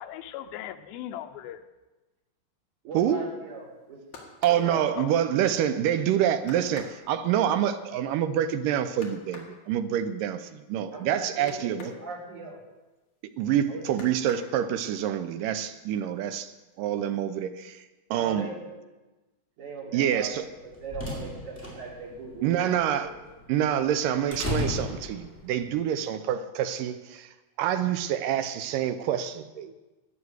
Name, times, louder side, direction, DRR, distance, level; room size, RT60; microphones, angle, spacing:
voice 1, 0.0-1.6 4.7-5.1, left 11 dB, 85° left, 7 dB, 2.5 m, -39 dB
voice 2, 2.8-4.0 4.5-5.0 10.9-12.6 13.7-13.9 18.1-18.7 19.6-23.1, right 3 dB, 55° right, -4 dB, 4.9 m, -39 dB
sound 1, 3.7-5.7 6.0-6.1 6.4-12.0 12.4-13.5 13.9-15.0 15.4-16.0 16.3-17.0 17.3-17.4, left 4 dB, 55° left, 3.0 m, -49 dB
voice 3, 4.4-11.9 13.4-18.5 19.9-20.5 22.4-23.1 23.5-29.7, right 10 dB, 75° right, 10 dB, 2.2 m, -27 dB
sound 2, 20.4-25.7, left 2 dB, 5° left, 3.7 m, -35 dB
12.5 x 9.9 x 8.0 m, 1.1 s
omnidirectional pair, 4.2 m